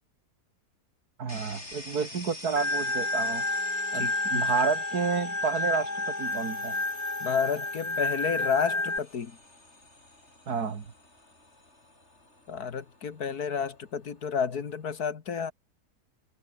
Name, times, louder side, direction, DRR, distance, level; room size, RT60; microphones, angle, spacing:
voice 1, 1.2-3.4 3.9-5.9 6.2-6.8 10.5-10.9, right 6 dB, 70° right, 2.5 m, -30 dB
sound 1, 1.3-15.0, left 2 dB, 45° left, 6.2 m, -48 dB
Organ, 2.6-9.0, left 2 dB, 15° left, 0.8 m, -30 dB
voice 2, 3.9-4.4 7.2-9.4 12.5-15.5, left 6 dB, 70° left, 2.2 m, -31 dB
omnidirectional pair, 1.7 m